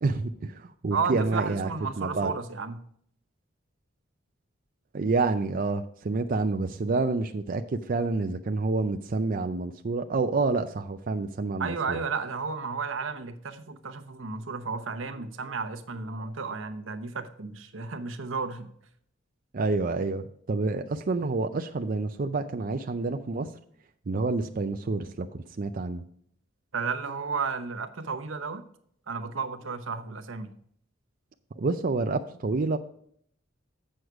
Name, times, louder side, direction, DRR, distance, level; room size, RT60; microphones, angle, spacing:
voice 1, 0.0-1.7 2.0-2.3 4.9-12.0 19.5-23.5 24.1-26.0 31.6-32.8, right 3 dB, 45° right, 0.5 m, -28 dB
voice 2, 0.9-2.8 11.6-18.7 26.7-28.6 29.1-30.5, right 5 dB, 85° right, 0.9 m, -33 dB
8.0 x 6.4 x 4.7 m
head